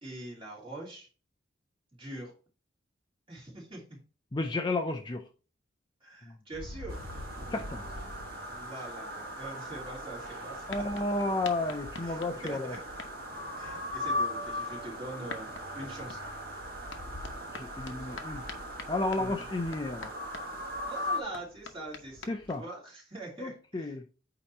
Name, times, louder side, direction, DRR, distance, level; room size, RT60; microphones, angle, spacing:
voice 1, 0.0-1.1 1.9-2.3 3.3-4.0 6.0-7.0 8.5-10.9 12.0-12.8 13.5-15.5 15.7-16.2 19.2-19.4 20.8-23.9, right 2 dB, 25° right, 2.9 m, -43 dB
voice 2, 4.3-5.2 6.3-6.4 7.5-7.8 10.7-12.7 17.5-18.5 18.9-20.1 22.3-22.6 23.4-24.1, left 2 dB, 20° left, 0.4 m, -32 dB
sound 1, 6.5-22.6, left 2 dB, 70° left, 0.9 m, -46 dB
sound 2, 6.9-21.2, left 1 dB, 50° right, 1.4 m, -39 dB
8.5 x 3.0 x 4.1 m
head